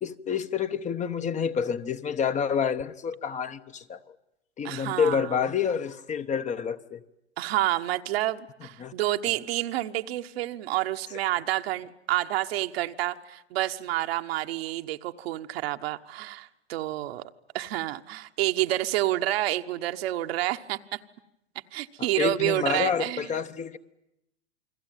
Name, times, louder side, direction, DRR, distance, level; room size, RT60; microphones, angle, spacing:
voice 1, 0.0-4.0 4.6-7.0 8.8-8.9 22.2-23.8, left 7 dB, 20° left, 10 dB, 1.0 m, -28 dB
voice 2, 4.6-5.3 7.4-17.2 17.5-21.0 21.7-23.3, right 15 dB, 60° right, 7 dB, 1.3 m, -29 dB
28.5 x 21.5 x 9.2 m, 0.89 s
hypercardioid pair, 110°, 34 cm